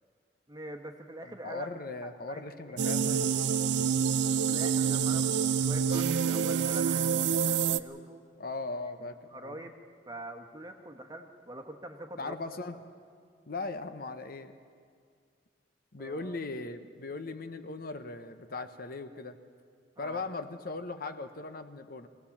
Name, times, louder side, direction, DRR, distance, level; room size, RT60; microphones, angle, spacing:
voice 1, 0.5-1.7 2.0-3.7 4.5-8.2 9.3-12.3 16.0-16.4 20.0-20.2, right 1 dB, 20° right, 4 dB, 1.3 m, -45 dB
voice 2, 1.2-3.2 8.4-9.7 12.2-12.8 13.5-14.6 15.9-19.4 20.0-22.1, left 3 dB, 55° left, 9 dB, 0.9 m, -39 dB
sound 1, 2.8-7.8, right 7 dB, 75° right, 0.5 m, -27 dB
22.5 x 16.5 x 7.2 m, 2.2 s
head